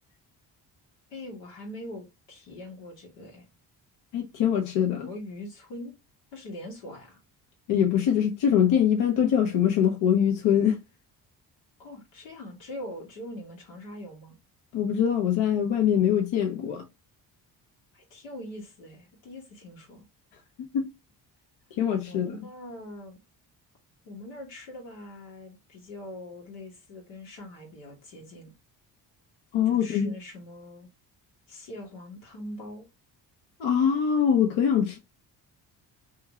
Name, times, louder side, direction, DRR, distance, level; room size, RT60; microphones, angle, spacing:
voice 1, 1.1-3.5 5.0-5.9 6.3-7.2 11.8-14.4 17.9-20.0 22.0-23.2 24.0-28.5 29.7-30.9 31.5-32.9, left 1 dB, 90° left, 1.3 m, -42 dB
voice 2, 4.1-5.1 7.7-10.8 14.7-16.8 20.7-20.9 21.8-22.4 29.5-30.1 33.6-35.0, left 9 dB, 65° left, 0.8 m, -23 dB
2.8 x 2.5 x 2.8 m
supercardioid pair, 55°, 50 cm